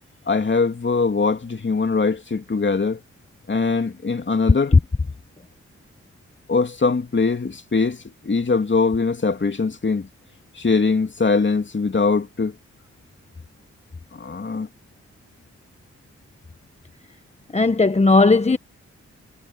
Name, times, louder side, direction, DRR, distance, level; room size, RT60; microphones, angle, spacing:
voice 1, 0.3-3.0 3.5-4.7 6.5-10.1 10.5-12.6 14.1-14.7, left 4 dB, 40° left, 2.7 m, -22 dB
voice 2, 17.5-18.6, left 3 dB, 25° left, 1.0 m, -15 dB
cardioid pair, 55°, 29 cm